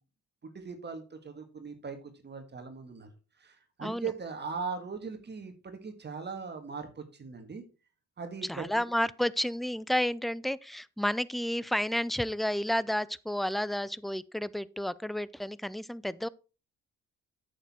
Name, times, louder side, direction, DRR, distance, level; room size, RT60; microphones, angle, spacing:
voice 1, 0.4-3.1 3.4-7.6 8.2-8.8, right 5 dB, 35° right, 1.8 m, -39 dB
voice 2, 3.8-4.1 8.5-16.3, left 1 dB, ahead, 0.4 m, -31 dB
8.8 x 6.8 x 4.3 m
cardioid pair, 90°, 30 cm